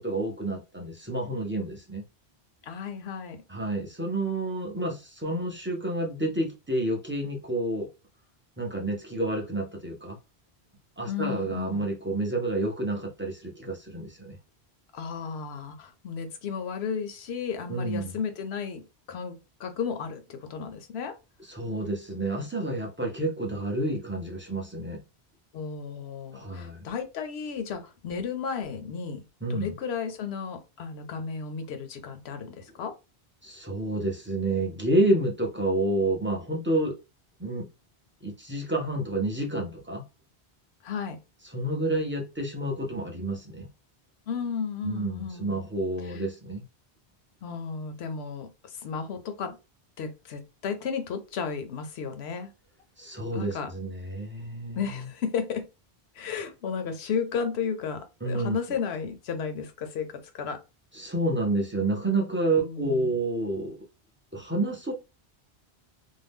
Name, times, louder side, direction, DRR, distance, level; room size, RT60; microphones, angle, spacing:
voice 1, 0.0-2.0 3.5-7.9 8.6-10.2 11.0-14.4 17.7-18.2 21.5-25.0 26.3-26.8 29.4-29.7 33.4-37.0 37.4-37.7 38.2-40.0 41.5-43.7 44.8-46.6 53.0-55.1 58.2-58.6 60.9-63.8 64.3-64.9, right 2 dB, 15° right, 0.4 m, -29 dB
voice 2, 2.6-3.4 11.1-11.8 14.9-18.8 19.1-21.2 25.5-29.2 29.5-32.9 40.8-41.2 44.3-45.6 46.0-46.2 47.4-49.6 50.0-52.5 53.3-53.7 54.8-55.7 56.1-60.6 62.6-63.2, left 6 dB, 75° left, 0.9 m, -33 dB
2.6 x 2.0 x 3.4 m
omnidirectional pair, 1.1 m